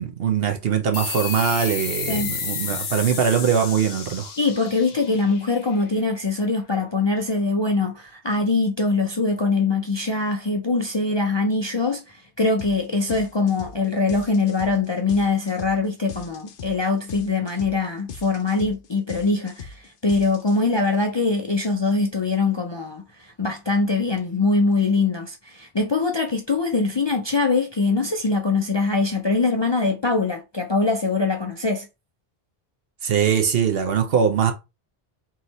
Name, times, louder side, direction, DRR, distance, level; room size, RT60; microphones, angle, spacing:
voice 1, 0.0-4.3 33.0-34.5, right 7 dB, 70° right, 0.9 m, -22 dB
sound 1, 0.9-6.1, left 6 dB, 80° left, 1.1 m, -32 dB
voice 2, 4.4-31.9, left 3 dB, 35° left, 0.5 m, -23 dB
sound 2, 12.6-12.8 13.1-20.9, left 6 dB, 65° left, 0.8 m, -40 dB
3.8 x 3.1 x 4.0 m
omnidirectional pair, 1.0 m